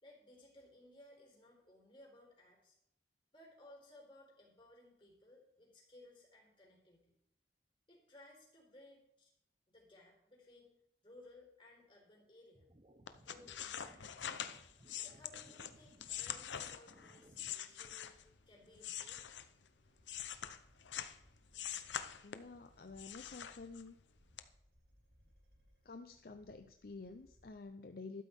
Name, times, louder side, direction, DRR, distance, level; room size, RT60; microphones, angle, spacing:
voice 1, 0.0-2.8 3.3-7.2 7.9-9.3 9.7-10.7 11.0-12.7 13.2-14.6 15.0-19.2, left 1 dB, 30° left, -1 dB, 4.0 m, -61 dB
sound 1, 12.5-17.5, right 1 dB, 30° right, 0.9 m, -64 dB
sound 2, 13.1-18.3 18.8-21.2 21.5-22.6 23.0-24.0 24.4-24.5, left 9 dB, 90° left, 0.7 m, -44 dB
sound 3, 15.6-27.6, equal, 75° right, 5.0 m, -70 dB
voice 2, 22.2-24.0 25.8-28.2, left 3 dB, 55° left, 7 dB, 0.6 m, -50 dB
12.5 x 12.0 x 3.6 m, 0.75 s
head